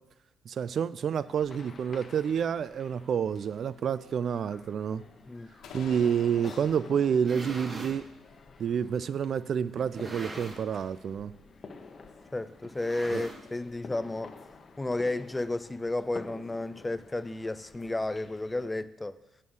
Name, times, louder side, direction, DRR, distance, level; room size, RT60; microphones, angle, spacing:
voice 1, 0.5-5.0 5.7-8.1 8.6-11.3 13.1-13.2, right 7 dB, 60° right, 17 dB, 0.3 m, -29 dB
sound 1, 1.2-18.7, left 4 dB, 40° left, 1.0 m, -51 dB
sound 2, 5.6-9.4, left 6 dB, 80° left, 1.4 m, -49 dB
sound 3, 7.2-8.0 8.8-8.9 9.8-10.8 11.1-11.4 11.6-11.7 12.6-13.7, right 2 dB, 35° right, 1.8 m, -42 dB
voice 2, 12.3-14.3 14.8-19.2, left 2 dB, 15° left, 13 dB, 0.4 m, -32 dB
8.3 x 5.5 x 7.9 m, 0.91 s
cardioid pair, 90°, 0 cm